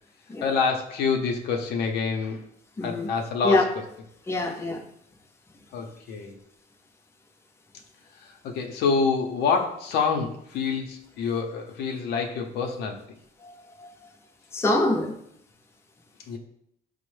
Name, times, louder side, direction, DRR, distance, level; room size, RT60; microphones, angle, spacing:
voice 1, 0.4-2.4 2.8-3.6 5.7-6.4 8.2-13.0 16.3-16.4, left 5 dB, 75° left, 2 dB, 0.6 m, -27 dB
voice 2, 2.8-3.1 3.4-3.6 4.3-4.8 13.4-13.5 13.8-13.9 14.5-15.1, left 2 dB, 15° left, 2 dB, 0.5 m, -24 dB
5.1 x 2.0 x 3.1 m, 0.72 s
cardioid pair, 110°, 17 cm